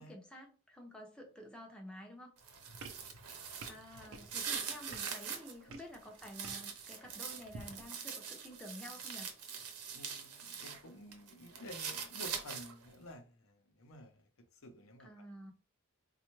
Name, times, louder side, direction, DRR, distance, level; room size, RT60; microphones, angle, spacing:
voice 1, 0.0-2.3 3.1-3.3 3.7-9.3 15.0-15.5, equal, 5° left, 0 dB, 0.6 m, -51 dB
sound 1, 2.4-5.5 5.9-10.8 11.1-12.9, right 7 dB, 85° right, 0.8 m, -43 dB
voice 2, 2.6-2.9 5.6-5.8 9.9-15.5, left 1 dB, 65° left, 5 dB, 0.7 m, -53 dB
sound 2, 2.8-7.9, right 3 dB, 60° right, 0.5 m, -54 dB
4.2 x 2.3 x 3.0 m, 0.36 s
head